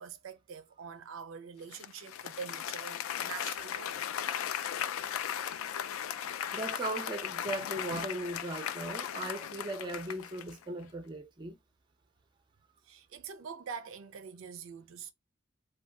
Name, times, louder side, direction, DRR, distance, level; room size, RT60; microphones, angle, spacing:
voice 1, 0.0-4.0 12.8-15.1, right 6 dB, 70° right, 0.4 m, -45 dB
Applause, 1.7-10.6, left 9 dB, 80° left, 0.3 m, -37 dB
voice 2, 6.5-11.6, right 1 dB, 20° right, 0.5 m, -38 dB
2.6 x 2.2 x 3.3 m
head